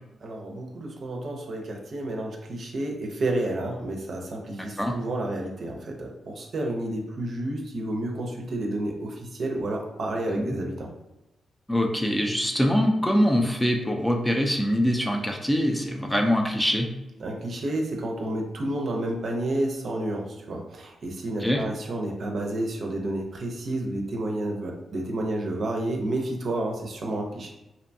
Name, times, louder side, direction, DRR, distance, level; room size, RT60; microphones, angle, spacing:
voice 1, 0.2-10.9 17.2-27.5, right 1 dB, 60° right, 1 dB, 0.5 m, -30 dB
voice 2, 4.6-4.9 10.3-10.5 11.7-16.9 21.4-21.6, equal, 10° left, 2 dB, 0.4 m, -24 dB
2.6 x 2.2 x 2.6 m, 0.97 s
cardioid pair, 60°, 0 cm